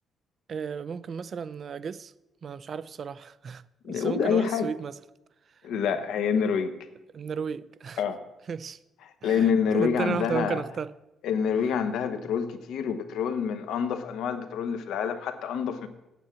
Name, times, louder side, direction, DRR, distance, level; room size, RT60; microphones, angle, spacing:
voice 1, 0.5-2.1 2.4-3.6 3.9-4.9 7.1-8.0 8.5-8.8 9.2-10.9, right 6 dB, 50° right, 0.4 m, -33 dB
voice 2, 3.8-4.7 5.6-6.7 8.0-8.2 9.2-10.6 11.2-15.9, left 7 dB, 85° left, 1.0 m, -27 dB
8.9 x 7.4 x 7.5 m
cardioid pair, 90°, 0 cm